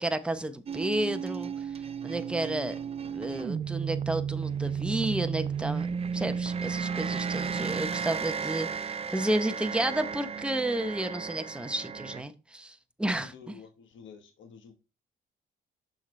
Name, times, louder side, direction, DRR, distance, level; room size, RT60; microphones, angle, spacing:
voice 1, 0.0-1.7 2.0-2.8 3.0-5.9 6.1-13.6, right 1 dB, 5° right, 0.8 m, -31 dB
sound 1, 0.7-12.2, right 6 dB, 30° right, 0.5 m, -33 dB
voice 2, 13.2-14.7, left 6 dB, 75° left, 1.2 m, -50 dB
6.4 x 6.2 x 3.2 m
cardioid pair, 90°, 20 cm